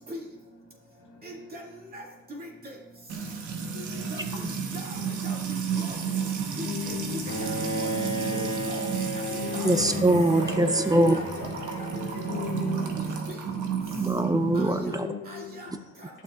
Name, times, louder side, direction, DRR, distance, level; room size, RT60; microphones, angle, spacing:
voice 1, 1.2-1.6 1.9-2.0 2.4-2.8 4.1-4.2 4.7-4.8 5.2-5.4 5.7-5.9 6.6-6.9 7.8-7.9 8.3-8.9 9.1-9.2 9.5-9.7 10.7-10.8 11.1-11.5 11.8-11.9 12.7-12.8 13.3-13.4 14.5-14.7 15.3-15.7 16.0-16.1, equal, 30° right, -2 dB, 2.3 m, -41 dB
Music / Water tap faucet / Trickle dribble, 3.1-14.9, right 6 dB, 80° right, 1.3 m, -32 dB
voice 2, 3.7-4.2 6.6-7.3 9.3-10.2 10.6-10.7 12.2-13.0 14.7-15.8, left 8 dB, 85° left, 1 dB, 0.8 m, -36 dB
Bowed string instrument, 7.3-13.3, right 1 dB, 45° left, 1.6 m, -34 dB
voice 3, 9.6-11.1 13.9-15.1, right 1 dB, 10° right, 8 dB, 0.6 m, -23 dB
12.0 x 7.1 x 2.5 m, 0.96 s
cardioid pair, 90°, 30 cm